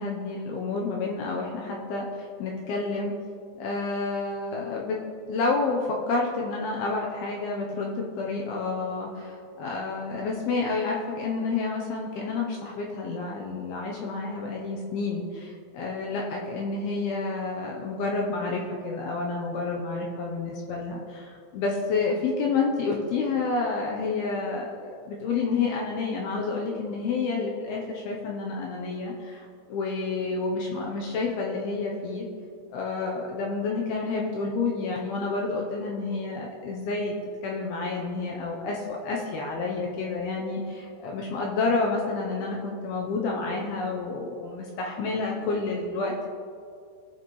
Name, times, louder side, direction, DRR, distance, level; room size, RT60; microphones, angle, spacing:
voice 1, 0.0-2.1 2.4-3.1 3.6-5.0 5.3-32.3 32.7-37.1 37.4-46.3, left 3 dB, 80° left, -1 dB, 2.3 m, -29 dB
18.5 x 7.1 x 3.2 m, 2.3 s
omnidirectional pair, 5.5 m